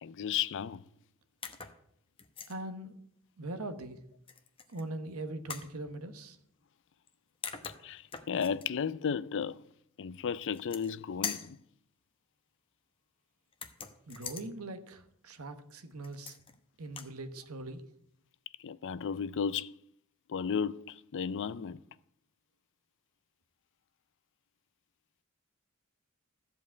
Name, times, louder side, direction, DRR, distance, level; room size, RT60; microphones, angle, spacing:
voice 1, 0.0-0.8 7.8-9.6 10.0-11.6 18.6-19.7 20.3-21.8, left 7 dB, 60° left, 0.4 m, -34 dB
sound 1, 1.4-1.8 2.2-2.6 4.3-4.9 5.5-5.7 7.1-7.2 7.4-8.7 10.4-11.0 11.2-11.6 13.5-14.5 16.0-16.6 16.9-17.1, left 6 dB, 25° left, 0.9 m, -42 dB
voice 2, 2.5-2.9 3.4-4.0 4.7-6.4 14.1-16.4 16.8-17.8, right 2 dB, 75° right, 1.1 m, -41 dB
14.0 x 5.2 x 8.3 m
head